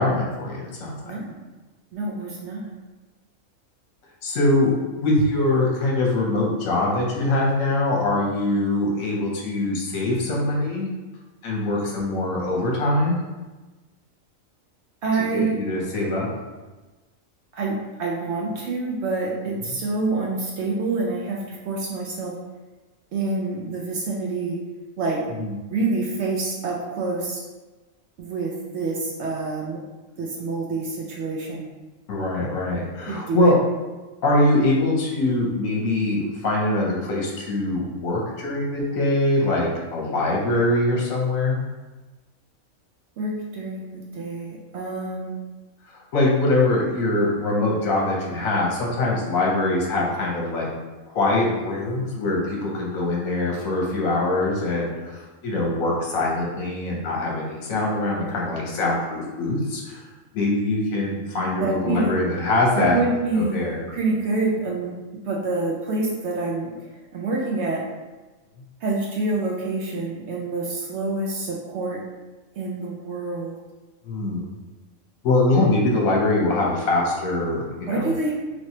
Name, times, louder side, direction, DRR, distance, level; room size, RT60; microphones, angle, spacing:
voice 1, 0.0-1.2 4.2-10.9 11.4-13.2 15.3-16.3 25.4-25.6 32.1-33.6 34.2-41.6 45.9-50.7 51.1-60.0 60.3-63.0 63.4-63.8 74.0-74.5 75.2-78.1, left 2 dB, 75° left, -3 dB, 1.2 m, -23 dB
voice 2, 1.0-1.4 1.9-2.7 15.0-15.6 17.5-22.3 23.1-24.6 25.0-25.2 25.7-27.4 28.2-29.8 30.2-31.6 33.1-33.5 43.2-45.4 61.6-62.1 62.7-64.9 65.2-66.7 67.1-67.8 68.8-72.0 72.6-73.6 77.9-78.3, right 3 dB, 65° right, -2 dB, 0.8 m, -27 dB
3.1 x 3.0 x 2.8 m, 1.2 s
omnidirectional pair, 1.4 m